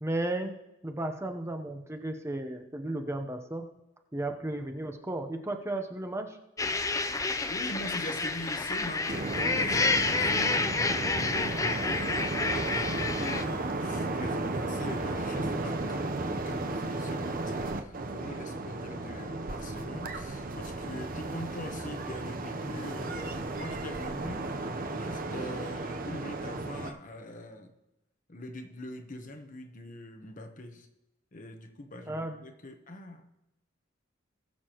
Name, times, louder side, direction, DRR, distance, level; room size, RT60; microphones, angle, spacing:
voice 1, 0.0-0.5 0.8-3.7 4.1-6.4 32.1-32.4, right 1 dB, 15° right, 5 dB, 0.8 m, -34 dB
sound 1, 6.6-13.4, left 3 dB, 15° left, 0.4 m, -29 dB
voice 2, 7.5-24.5 24.9-27.7 28.3-30.9 31.3-33.2, left 1 dB, 40° left, 6 dB, 1.0 m, -43 dB
sound 2, 9.1-26.9, right 2 dB, 45° right, 0.8 m, -34 dB
20.0 x 6.7 x 3.0 m, 0.93 s
head